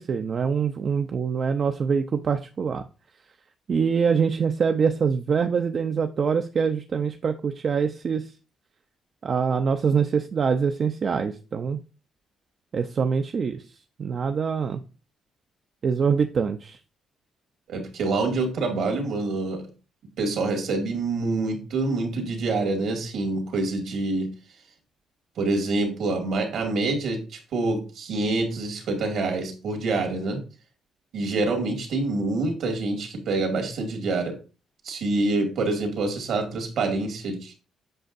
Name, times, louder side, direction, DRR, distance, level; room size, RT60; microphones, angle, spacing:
voice 1, 0.0-2.8 3.7-8.3 9.2-11.8 12.7-13.6 14.0-14.8 15.8-16.8, right 6 dB, 50° right, 6 dB, 0.5 m, -24 dB
voice 2, 17.7-19.7 20.2-24.3 25.4-30.4 31.1-34.4 34.8-37.5, right 3 dB, 75° right, 3 dB, 2.1 m, -26 dB
7.8 x 5.8 x 2.6 m, 0.34 s
cardioid pair, 90°, 0 cm